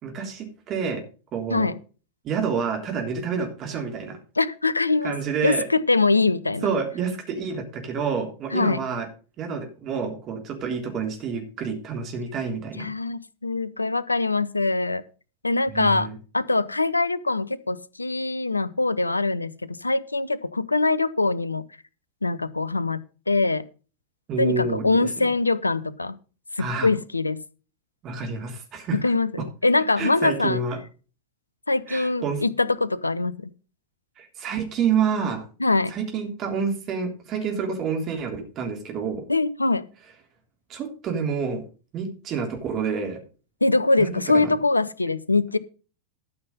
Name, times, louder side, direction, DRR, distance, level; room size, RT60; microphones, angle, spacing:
voice 1, 0.0-1.0 1.3-1.7 2.2-4.2 5.0-5.7 6.6-9.1 9.4-12.9 15.7-16.1 24.3-25.1 26.6-26.9 28.0-29.0 30.0-30.8 31.9-32.4 34.2-35.4 35.9-39.3 40.7-41.6 41.9-43.2 44.0-44.5, right 6 dB, 35° right, 2 dB, 3.4 m, -28 dB
voice 2, 4.4-5.2 5.4-6.7 8.5-8.8 12.8-15.0 15.4-16.1 16.3-21.6 22.2-23.6 24.4-26.2 26.6-27.4 28.9-29.3 29.6-30.6 31.7-33.5 35.6-36.0 39.3-39.8 43.6-45.6, left 3 dB, 80° left, 18 dB, 0.6 m, -23 dB
13.0 x 5.9 x 5.4 m, 0.35 s
figure-of-eight pair, 90°, 0 cm